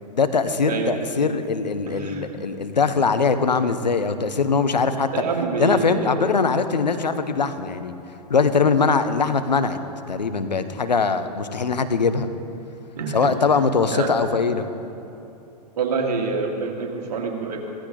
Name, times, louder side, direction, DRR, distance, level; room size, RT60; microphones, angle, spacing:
voice 1, 0.1-5.1 5.6-7.9 8.3-9.8 10.1-12.3 13.1-14.7, left 5 dB, 85° left, 10 dB, 0.8 m, -21 dB
voice 2, 0.7-1.0 1.9-2.3 5.1-6.2 13.0-13.4 13.9-14.1 15.8-17.7, right 4 dB, 65° right, 1 dB, 2.2 m, -26 dB
15.5 x 15.0 x 3.9 m, 2.8 s
figure-of-eight pair, 100°, 21 cm